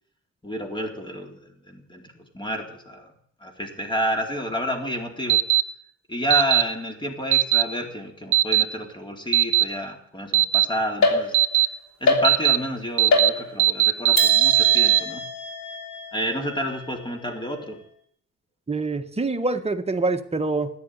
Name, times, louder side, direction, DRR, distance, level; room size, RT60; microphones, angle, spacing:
voice 1, 0.4-2.0 2.3-3.1 3.4-5.4 6.1-11.6 12.0-15.2 16.1-17.8, equal, 15° left, 3 dB, 3.9 m, -30 dB
sound 1, 5.3-5.6 6.3-6.6 7.3-7.6 8.3-8.6 9.3-9.6 10.3-10.6 11.3-11.7 12.2-12.6 13.0-13.3 13.6-15.0, right 15 dB, 90° right, 0.8 m, -17 dB
sound 2, 11.0-11.7 12.1-12.7 13.1-13.8 14.2-17.6, left 3 dB, 65° left, 3.4 m, -26 dB
voice 2, 18.7-20.7, right 3 dB, 20° right, 6 dB, 1.5 m, -25 dB
14.0 x 10.5 x 9.6 m, 0.66 s
cardioid pair, 90°, 30 cm